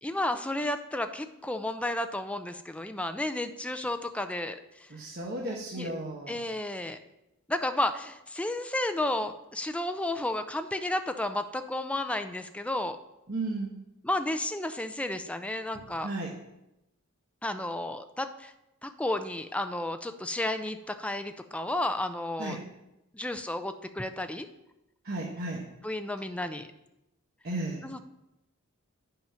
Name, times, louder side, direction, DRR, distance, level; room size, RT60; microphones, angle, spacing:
voice 1, 0.0-4.9 5.4-5.9 6.3-7.0 7.5-13.0 14.0-16.1 17.4-18.5 18.8-22.6 23.1-24.5 25.8-26.7 27.8-28.0, left 1 dB, 5° left, 8 dB, 0.4 m, -32 dB
voice 2, 4.9-6.4 13.3-13.8 15.7-16.3 22.4-22.6 25.0-25.6 27.4-27.8, right 2 dB, 45° right, -3 dB, 1.1 m, -34 dB
9.1 x 5.8 x 5.6 m, 0.91 s
head